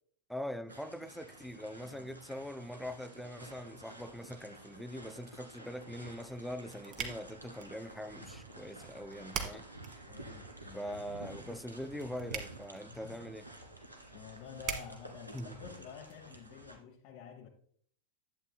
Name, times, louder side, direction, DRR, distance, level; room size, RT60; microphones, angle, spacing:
voice 1, 0.3-9.7 10.7-13.5 15.3-15.6, equal, ahead, 0.4 m, -43 dB
sound 1, 0.7-16.8, right 2 dB, 85° right, 1.4 m, -51 dB
voice 2, 1.8-2.1 10.1-11.2 12.9-13.3 14.1-17.5, left 7 dB, 45° left, 0.8 m, -50 dB
sound 2, 6.2-16.1, right 7 dB, 40° right, 1.3 m, -46 dB
11.5 x 8.6 x 2.2 m
figure-of-eight pair, 90°, 0 cm